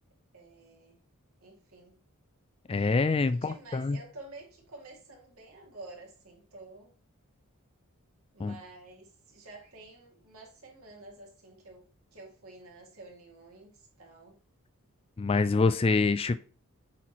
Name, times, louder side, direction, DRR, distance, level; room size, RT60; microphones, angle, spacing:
voice 1, 0.3-1.0 1.4-2.0 3.3-6.9 8.3-11.8 12.1-14.4, right 2 dB, 70° right, 2.5 m, -50 dB
voice 2, 2.7-4.0 8.4-8.5 15.2-16.4, left 4 dB, 25° left, 0.3 m, -25 dB
8.1 x 4.4 x 3.1 m
head